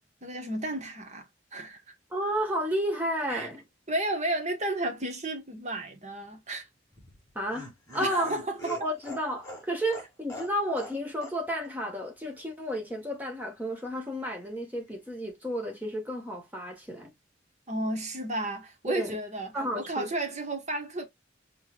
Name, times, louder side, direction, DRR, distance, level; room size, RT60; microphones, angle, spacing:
voice 1, 0.2-1.8 3.3-3.5 3.9-6.7 8.0-8.8 17.7-21.1, right 1 dB, 35° right, 1.3 m, -33 dB
voice 2, 2.1-3.6 7.3-8.3 8.7-17.1 18.9-19.2 19.5-20.0, equal, 10° right, 1.4 m, -32 dB
Laughter, 6.9-11.0 11.2-11.3 11.6-11.7, equal, 15° left, 2.6 m, -43 dB
5.5 x 3.3 x 2.4 m
head